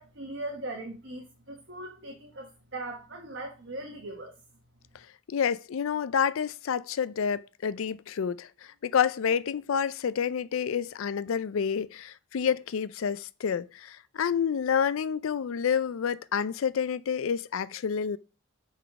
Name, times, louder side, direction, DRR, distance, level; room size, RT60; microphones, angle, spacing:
voice 1, 0.0-4.3, right 2 dB, 55° right, 1.2 m, -39 dB
voice 2, 5.3-18.2, left 7 dB, 75° left, 0.4 m, -29 dB
6.1 x 4.1 x 4.7 m
head